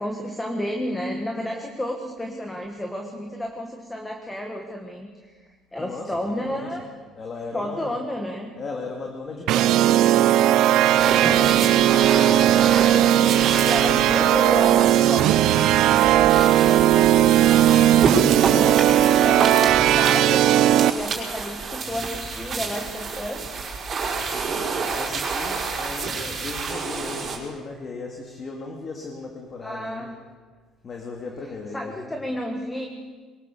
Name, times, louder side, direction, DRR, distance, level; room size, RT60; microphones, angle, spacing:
voice 1, 0.0-5.3 5.7-6.8 7.5-8.5 12.8-15.5 15.9-17.4 18.2-23.4 29.6-30.1 31.7-32.9, left 1 dB, 10° left, 2 dB, 1.9 m, -32 dB
voice 2, 5.8-6.8 7.1-8.0 8.6-12.4 13.1-14.6 15.9-16.3 24.1-30.1 30.8-32.2, left 4 dB, 35° left, 1 dB, 2.6 m, -36 dB
sound 1, 9.5-20.9, right 12 dB, 65° right, 0.5 m, -17 dB
sound 2, 11.0-27.4, right 4 dB, 40° right, 4.9 m, -29 dB
22.5 x 19.5 x 6.9 m, 1.4 s
cardioid pair, 130°, 0 cm